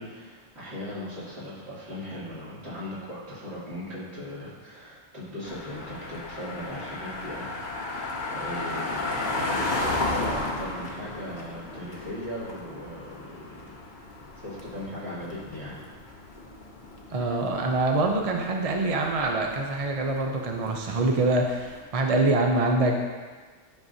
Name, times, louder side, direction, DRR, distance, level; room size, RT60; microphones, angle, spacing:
voice 1, 0.0-13.7 14.4-15.8, left 1 dB, 60° right, -10 dB, 3.0 m, -38 dB
sound 1, 5.4-21.8, left 2 dB, 45° left, 1.0 m, -34 dB
voice 2, 17.1-23.0, right 2 dB, 40° right, 2 dB, 0.5 m, -25 dB
10.5 x 6.4 x 2.7 m, 1.4 s
omnidirectional pair, 1.3 m